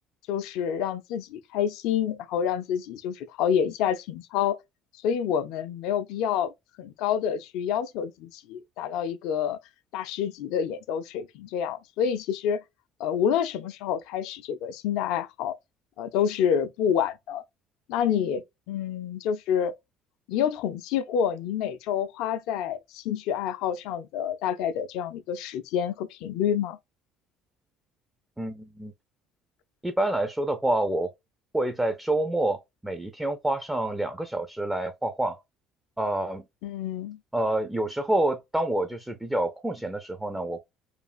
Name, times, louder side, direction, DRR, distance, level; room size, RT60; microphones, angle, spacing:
voice 1, 0.3-4.6 5.0-6.5 6.8-9.6 9.9-12.6 13.0-15.6 16.0-17.4 17.9-19.7 20.3-26.8 36.6-37.2, left 8 dB, 65° left, 0.3 m, -28 dB
voice 2, 28.4-28.9 29.8-31.1 31.5-35.4 36.0-36.4 37.3-40.6, right 1 dB, 10° right, 0.4 m, -27 dB
3.1 x 2.3 x 2.3 m
figure-of-eight pair, 60°, 0 cm